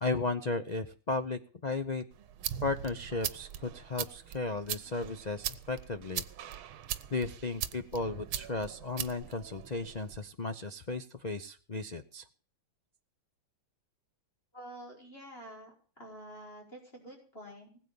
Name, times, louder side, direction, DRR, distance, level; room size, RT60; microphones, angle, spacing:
voice 1, 0.0-2.0 2.6-6.2 7.1-12.2, left 3 dB, 85° left, 9 dB, 0.3 m, -35 dB
sound 1, 2.1-10.2, right 10 dB, 85° right, 1.8 m, -40 dB
voice 2, 14.5-17.8, right 1 dB, 25° left, 0 dB, 5.3 m, -48 dB
20.0 x 8.3 x 7.0 m, 0.41 s
omnidirectional pair, 2.2 m